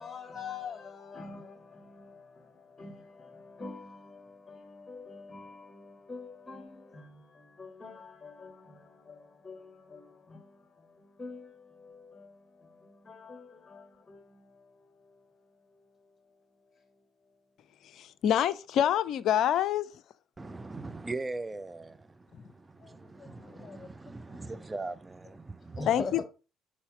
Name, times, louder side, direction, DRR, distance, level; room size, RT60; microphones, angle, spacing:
voice 1, 0.0-16.1 22.8-24.6 25.8-26.1, left 4 dB, 20° left, 1.5 m, -46 dB
voice 2, 18.0-19.9 25.9-26.2, left 10 dB, 50° left, 0.4 m, -26 dB
voice 3, 20.4-26.2, right 3 dB, 20° right, 0.5 m, -41 dB
5.6 x 4.9 x 5.2 m
figure-of-eight pair, 50°, 0 cm